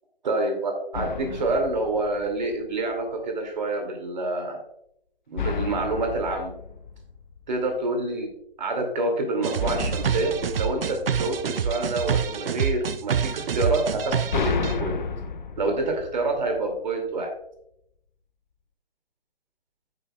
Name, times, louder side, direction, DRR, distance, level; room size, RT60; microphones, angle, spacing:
voice 1, 0.2-4.6 5.3-6.5 7.5-8.3 8.6-15.0 15.6-17.3, right 2 dB, 45° right, 3 dB, 2.4 m, -27 dB
sound 1, 0.9-2.8 5.4-7.8 9.6-11.9 13.8-16.9, left 5 dB, 50° left, 0.7 m, -33 dB
sound 2, 9.4-14.7, right 7 dB, 65° right, 0.6 m, -27 dB
9.3 x 8.1 x 2.3 m, 0.77 s
figure-of-eight pair, 140°, 30 cm